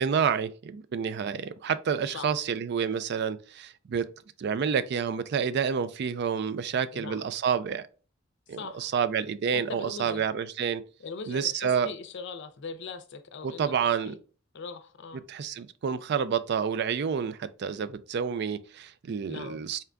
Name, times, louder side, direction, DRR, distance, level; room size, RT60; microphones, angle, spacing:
voice 1, 0.0-4.1 4.4-7.8 8.5-10.8 11.3-11.9 13.4-14.1 15.3-19.8, right 7 dB, 55° right, 0.4 m, -29 dB
voice 2, 6.9-7.2 8.5-8.9 9.7-10.3 11.0-14.2 14.5-15.2 19.3-19.6, left 4 dB, 60° left, 0.5 m, -40 dB
4.3 x 3.6 x 2.2 m
head